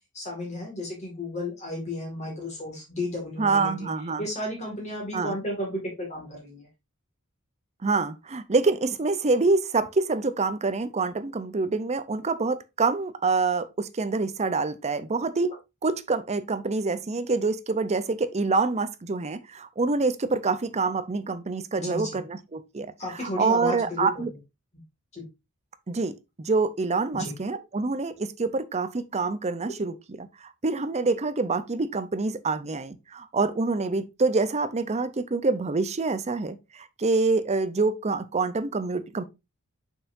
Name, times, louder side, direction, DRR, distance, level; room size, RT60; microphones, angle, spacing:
voice 1, 0.1-3.9 4.2-6.7 21.8-22.2 23.0-24.2 25.1-25.2 27.1-27.3, left 1 dB, 30° left, 2.1 m, -33 dB
voice 2, 3.4-4.3 5.1-5.4 7.8-15.5 15.8-24.3 25.9-39.2, right 3 dB, 30° right, 0.6 m, -26 dB
7.0 x 5.5 x 2.6 m
head